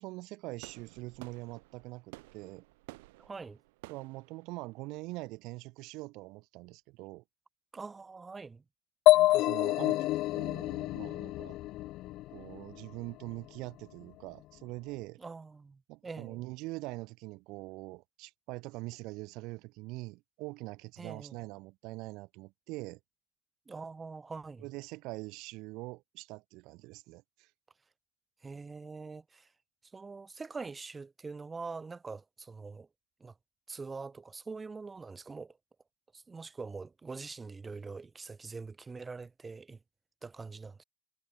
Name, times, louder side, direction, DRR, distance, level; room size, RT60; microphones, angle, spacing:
voice 1, 0.0-2.6 3.9-7.2 9.1-10.1 10.3-11.6 12.3-15.2 15.9-23.0 24.6-27.5, right 22 dB, 55° right, 2.0 m, -43 dB
Firework foreground, 0.6-5.5, right 23 dB, 85° right, 5.3 m, -53 dB
voice 2, 3.2-3.6 7.7-8.6 15.2-16.4 21.0-21.4 23.7-24.6 28.4-29.5 29.9-32.9 33.2-33.3 33.7-35.6 36.1-39.8 40.2-40.8, right 4 dB, 15° right, 3.9 m, -44 dB
sound 1, 9.1-12.7, left 17 dB, 45° left, 0.3 m, -27 dB
cardioid pair, 155°, 0 cm